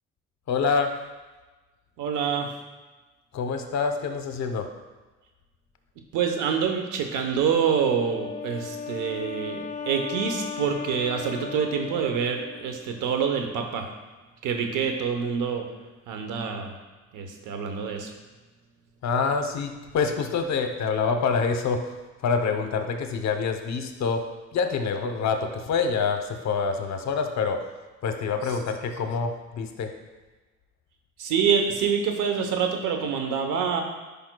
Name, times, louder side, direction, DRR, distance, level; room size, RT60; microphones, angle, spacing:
voice 1, 0.5-0.9 3.3-4.7 19.0-21.8 22.2-24.2 24.5-27.6 28.0-29.9, left 5 dB, 65° left, 6 dB, 0.8 m, -26 dB
voice 2, 2.0-2.5 6.1-13.9 14.4-15.7 16.1-16.7 17.1-18.1 31.2-33.8, right 7 dB, 90° right, 4 dB, 0.9 m, -26 dB
Wind instrument woodwind instrument, 7.8-13.2, left 6 dB, 25° left, 0.5 m, -37 dB
10.5 x 5.3 x 2.2 m, 1.2 s
cardioid pair, 90°, 30 cm